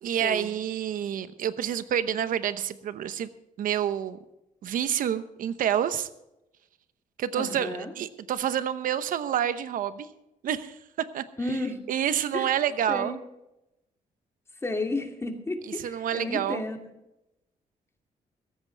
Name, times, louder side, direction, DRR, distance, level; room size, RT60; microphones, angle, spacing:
voice 1, 0.0-3.3 3.6-4.2 4.6-6.1 7.2-10.1 10.4-11.2 11.9-13.1 15.8-16.6, right 9 dB, 75° right, 13 dB, 0.9 m, -28 dB
voice 2, 7.4-7.9 11.4-11.8 12.3-12.6 12.9-13.2 14.6-16.8, left 2 dB, 20° left, 3 dB, 2.5 m, -32 dB
16.5 x 14.5 x 3.4 m, 0.89 s
cardioid pair, 105°, 14 cm